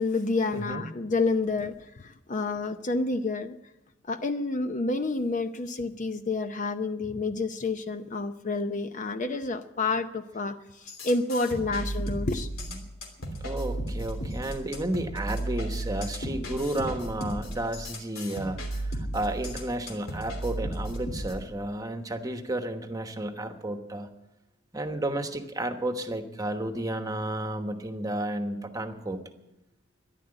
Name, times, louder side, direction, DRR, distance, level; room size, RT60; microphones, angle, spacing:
voice 1, 0.0-3.6 4.1-12.5, left 3 dB, 35° left, 9 dB, 0.6 m, -29 dB
voice 2, 0.5-0.9 12.6-12.8 13.4-24.1 24.7-29.2, right 1 dB, 15° right, 7 dB, 1.1 m, -32 dB
sound 1, 10.9-21.3, right 1 dB, 80° left, 3.1 m, -34 dB
13.5 x 11.0 x 8.9 m, 0.93 s
head